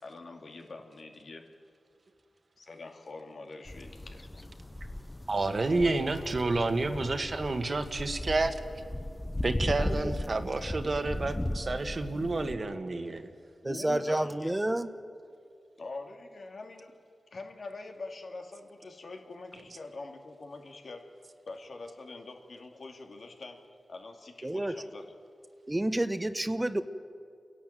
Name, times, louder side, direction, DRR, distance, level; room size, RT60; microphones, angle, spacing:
voice 1, 0.0-1.5 2.6-4.4 13.6-14.5 15.8-17.0 17.3-25.1, left 3 dB, 70° left, 3 dB, 2.8 m, -44 dB
sound 1, 3.7-12.5, left 1 dB, 20° left, 1.0 m, -37 dB
voice 2, 5.3-8.6 9.4-13.2, right 3 dB, 55° right, 8 dB, 1.8 m, -30 dB
voice 3, 9.8-10.1 13.6-14.9 24.4-24.8 25.7-26.8, right 1 dB, 20° right, 11 dB, 1.2 m, -30 dB
30.0 x 11.5 x 9.2 m, 2.3 s
cardioid pair, 45°, 0 cm